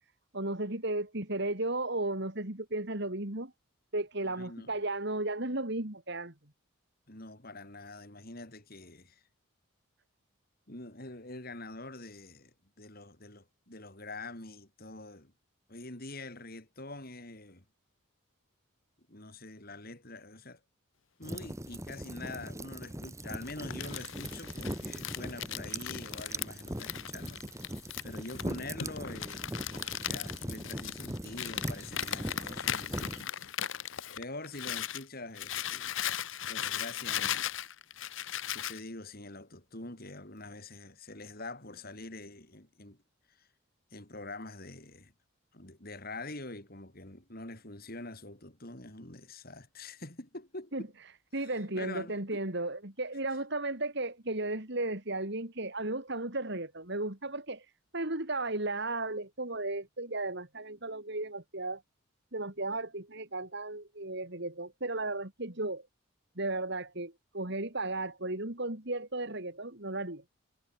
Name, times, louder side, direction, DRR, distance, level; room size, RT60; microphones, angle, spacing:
voice 1, 0.3-3.5 3.9-6.3 50.7-50.8 51.3-57.7 57.9-61.8 62.3-65.9 66.4-70.2, right 2 dB, 55° right, 3.2 m, -35 dB
voice 2, 4.2-4.7 7.1-9.2 10.7-12.5 12.8-15.3 15.7-17.6 19.1-20.6 21.2-27.5 28.0-29.5 30.0-33.6 34.2-36.0 36.5-37.5 38.5-43.0 43.3-43.5 43.9-45.1 45.5-50.9 51.4-52.4, left 2 dB, 45° left, 4.2 m, -45 dB
sound 1, 21.2-33.2, right 1 dB, 15° right, 5.9 m, -40 dB
Crumpling crinkling, 23.4-35.0 35.3-38.8, left 10 dB, 65° left, 0.9 m, -37 dB
head